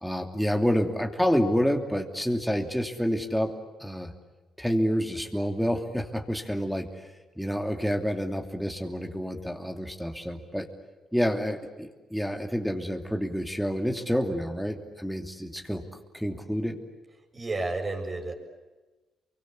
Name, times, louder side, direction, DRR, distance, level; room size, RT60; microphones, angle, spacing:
voice 1, 0.0-3.5 3.8-4.1 4.6-6.9 7.4-10.7 11.1-15.9 16.1-16.8, equal, ahead, 2 dB, 3.0 m, -28 dB
voice 2, 17.3-18.3, right 2 dB, 35° right, 4 dB, 7.3 m, -31 dB
29.5 x 24.0 x 8.5 m, 1.2 s
cardioid pair, 80°, 0 cm